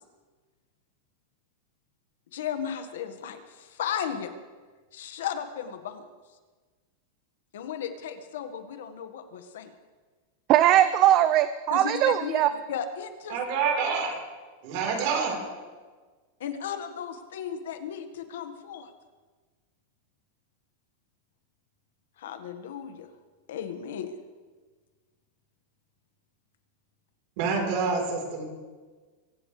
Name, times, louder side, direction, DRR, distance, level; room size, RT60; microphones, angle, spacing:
voice 1, 2.3-4.3 4.9-6.1 7.5-9.7 11.7-13.4 16.4-18.9 22.2-23.1 23.5-24.1, left 8 dB, 80° left, 7 dB, 1.6 m, -35 dB
voice 2, 10.5-12.5, right 12 dB, 30° right, 12 dB, 0.4 m, -20 dB
voice 3, 13.3-14.2 14.6-15.4 27.4-28.4, right 5 dB, 45° right, 1 dB, 4.2 m, -27 dB
24.0 x 15.5 x 3.4 m, 1.4 s
supercardioid pair, 170°, 0 cm